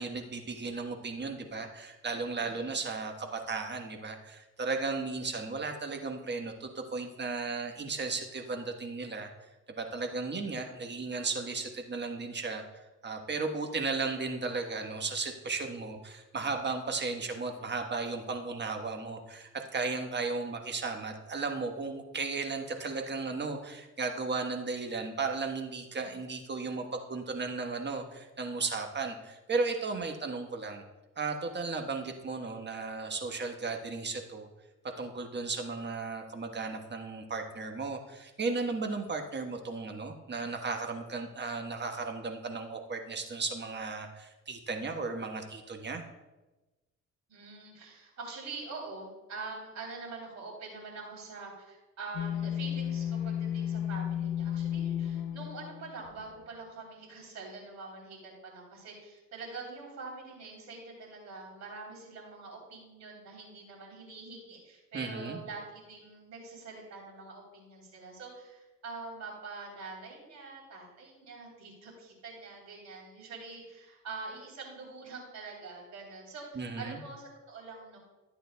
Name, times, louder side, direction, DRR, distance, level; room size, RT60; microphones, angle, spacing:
voice 1, 0.0-9.3 9.8-12.6 13.0-30.8 31.2-34.5 35.0-46.0 64.9-65.4 76.5-77.0, right 4 dB, 35° right, 4 dB, 1.2 m, -35 dB
voice 2, 47.3-78.0, right 3 dB, 65° right, -1 dB, 3.4 m, -45 dB
sound 1, 52.1-56.4, left 9 dB, 75° left, 0.7 m, -33 dB
14.0 x 8.8 x 2.2 m, 1.1 s
cardioid pair, 90°, 30 cm